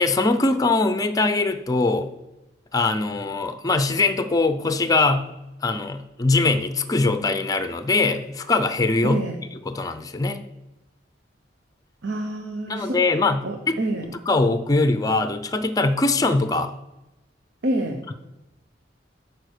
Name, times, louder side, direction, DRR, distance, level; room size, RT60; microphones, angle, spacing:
voice 1, 0.0-2.1 2.7-5.3 5.6-9.2 9.7-10.4 12.7-13.8 14.3-16.8, left 3 dB, 20° left, 10 dB, 0.5 m, -22 dB
voice 2, 9.0-9.4 12.0-13.0 13.4-14.1 17.6-18.0, right 1 dB, 85° right, 3 dB, 0.9 m, -27 dB
8.9 x 4.9 x 6.5 m, 0.97 s
head